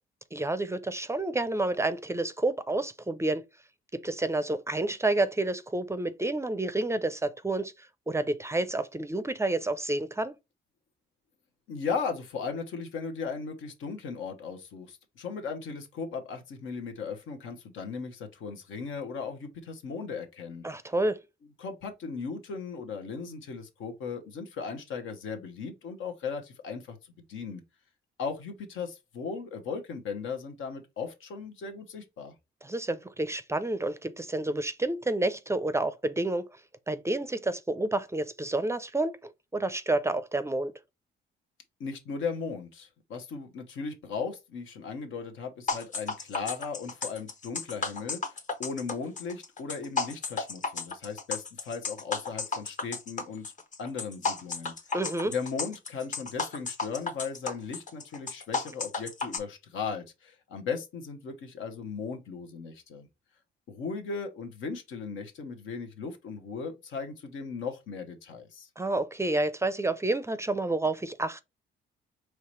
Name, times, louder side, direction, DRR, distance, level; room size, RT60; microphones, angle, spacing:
voice 1, 0.3-3.4 3.9-10.3 20.6-21.2 32.6-36.5 36.9-40.7 54.9-55.3 68.8-71.4, right 2 dB, 15° right, 0.4 m, -29 dB
voice 2, 11.7-20.7 21.6-27.0 27.3-27.6 28.2-32.3 41.8-53.4 53.8-54.7 55.2-63.1 63.7-68.7, left 5 dB, 80° left, 1.1 m, -37 dB
sound 1, 45.7-59.4, left 4 dB, 40° left, 0.9 m, -33 dB
4.8 x 3.1 x 3.1 m
cardioid pair, 90°, 20 cm